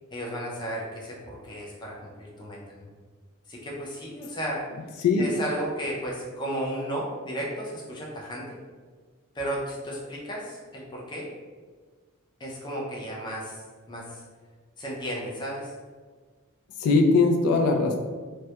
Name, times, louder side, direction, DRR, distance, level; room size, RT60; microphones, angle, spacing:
voice 1, 0.1-2.9 3.5-4.6 5.2-8.6 9.3-11.3 12.4-14.2 14.8-15.7, equal, 20° left, -3 dB, 0.4 m, -34 dB
voice 2, 5.0-5.3 16.8-18.0, left 3 dB, 90° left, 2 dB, 0.3 m, -20 dB
2.2 x 2.1 x 2.7 m, 1.5 s
head